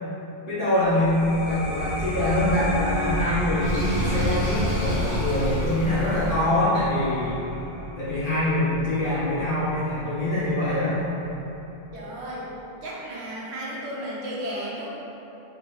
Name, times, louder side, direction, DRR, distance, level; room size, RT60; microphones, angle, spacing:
voice 1, 0.5-1.2 1.4-7.4 8.0-11.0, left 1 dB, 50° left, -12 dB, 1.5 m, -24 dB
sound 1, 0.8-11.9, equal, 75° left, 1.1 m, -33 dB
Sink (filling or washing), 3.6-6.3, equal, 30° left, 1.5 m, -27 dB
voice 2, 11.9-12.5 12.8-14.9, equal, 80° right, -5 dB, 1.0 m, -33 dB
4.0 x 3.7 x 2.8 m, 3.0 s
omnidirectional pair, 1.1 m